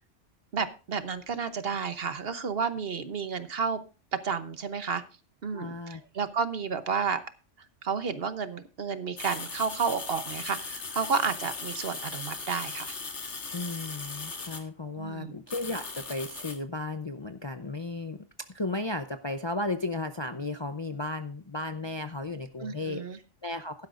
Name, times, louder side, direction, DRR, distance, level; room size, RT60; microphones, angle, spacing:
voice 1, 0.5-3.8 4.1-5.0 5.4-7.2 7.8-13.0 15.0-15.4 22.6-23.2, right 5 dB, 55° right, 11 dB, 1.1 m, -31 dB
voice 2, 5.5-6.1 13.5-18.2 18.5-23.9, left 2 dB, 30° left, 8 dB, 0.5 m, -35 dB
sound 1, 9.2-14.6 15.5-16.6, left 4 dB, 65° left, 2.0 m, -38 dB
15.5 x 12.0 x 2.5 m, 0.33 s
omnidirectional pair, 1.3 m